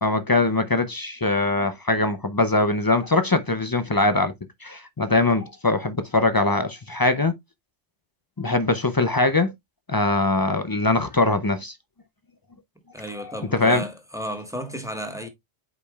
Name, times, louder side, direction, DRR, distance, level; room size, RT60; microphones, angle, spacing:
voice 1, 0.0-4.3 4.6-7.3 8.4-9.5 9.9-11.8 13.5-13.8, left 2 dB, 35° left, 0.3 m, -22 dB
voice 2, 12.9-15.3, equal, 5° right, 1.2 m, -33 dB
8.1 x 5.1 x 2.3 m
omnidirectional pair, 1.2 m